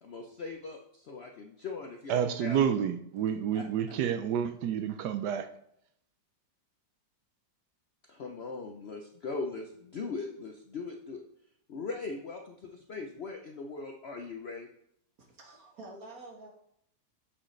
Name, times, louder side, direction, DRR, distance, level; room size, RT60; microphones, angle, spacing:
voice 1, 0.0-2.8 3.5-3.6 8.1-11.2 11.7-14.7, left 4 dB, 85° left, 2 dB, 0.5 m, -40 dB
voice 2, 2.1-5.5, right 8 dB, 70° right, 9 dB, 1.1 m, -29 dB
voice 3, 15.2-16.5, right 2 dB, 50° right, 0 dB, 1.9 m, -48 dB
7.7 x 6.3 x 3.2 m, 0.72 s
omnidirectional pair, 2.0 m